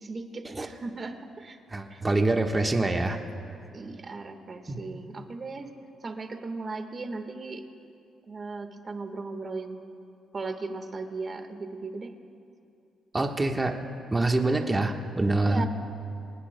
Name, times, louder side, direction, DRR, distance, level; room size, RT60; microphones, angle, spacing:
voice 1, 0.0-1.6 1.9-2.0 3.7-5.7 6.0-7.6 8.3-9.8 10.3-12.1 14.5-14.7 15.4-15.7, right 3 dB, 35° right, 5 dB, 1.5 m, -37 dB
voice 2, 1.7-3.2 4.7-4.8 13.1-13.8 14.1-15.7, right 2 dB, 20° right, 3 dB, 1.3 m, -25 dB
25.5 x 19.5 x 2.2 m, 2.6 s
cardioid pair, 90°, 0 cm